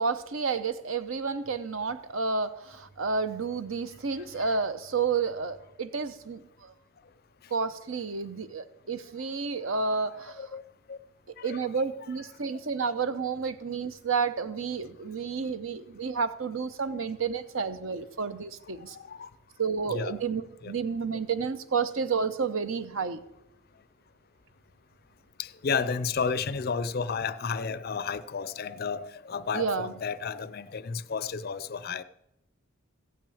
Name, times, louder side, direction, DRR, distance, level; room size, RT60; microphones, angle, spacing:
voice 1, 0.0-6.7 7.5-10.5 11.4-19.0 19.6-23.2 29.5-30.0, right 5 dB, 70° right, 0.8 m, -30 dB
voice 2, 10.0-10.6 10.9-11.0 11.4-11.6 18.9-19.3 19.9-20.2 20.6-20.7 25.4-32.0, left 5 dB, 45° left, 0.4 m, -32 dB
15.0 x 6.0 x 8.5 m
head